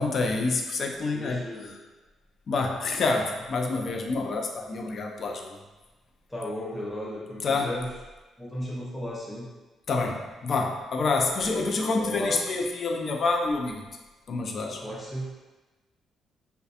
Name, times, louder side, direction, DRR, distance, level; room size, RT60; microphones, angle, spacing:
voice 1, 0.0-1.5 2.5-5.6 7.4-7.7 9.9-13.9 14.3-14.8, left 3 dB, 55° left, 3 dB, 0.3 m, -27 dB
voice 2, 1.1-1.8 6.3-7.9 8.4-9.5 11.4-11.7 11.9-12.4 14.8-15.3, left 1 dB, 15° left, -5 dB, 0.7 m, -35 dB
2.4 x 2.1 x 2.7 m, 1.2 s
cardioid pair, 90°, 0 cm